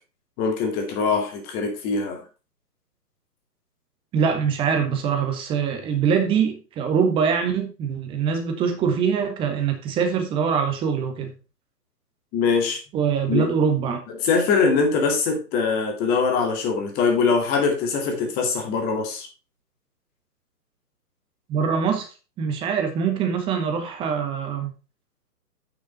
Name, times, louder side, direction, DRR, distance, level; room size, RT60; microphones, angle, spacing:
voice 1, 0.4-2.2 12.3-12.8 13.3-13.5 14.2-19.3, left 5 dB, 20° left, 2.2 m, -22 dB
voice 2, 4.1-11.3 12.9-14.0 21.5-22.1 22.4-24.7, right 6 dB, 10° right, 1.3 m, -23 dB
9.4 x 6.3 x 4.0 m
figure-of-eight pair, 135°, 48 cm